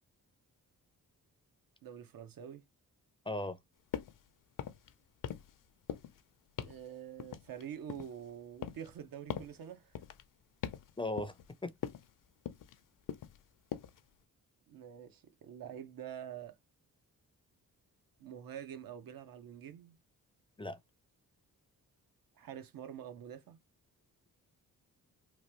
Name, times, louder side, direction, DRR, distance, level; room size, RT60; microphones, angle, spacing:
voice 1, 1.8-2.6 6.6-10.0 14.7-16.6 18.2-20.0 22.4-23.6, right 9 dB, 75° right, 0.8 m, -46 dB
voice 2, 3.3-3.6 11.0-11.3 11.6-11.7 20.6-20.8, left 1 dB, 15° left, 0.5 m, -36 dB
sound 1, 3.9-4.2 4.5-4.9 5.2-5.6 5.9-6.2 6.6-6.8 7.2-8.2 8.6-8.9 9.3-9.6 10.0-10.2 10.6-10.9 11.2-11.5 11.8-12.1 12.5-12.8 13.1-13.4 13.7-14.0, left 10 dB, 65° left, 0.6 m, -41 dB
3.1 x 2.3 x 3.0 m
cardioid pair, 95°, 35 cm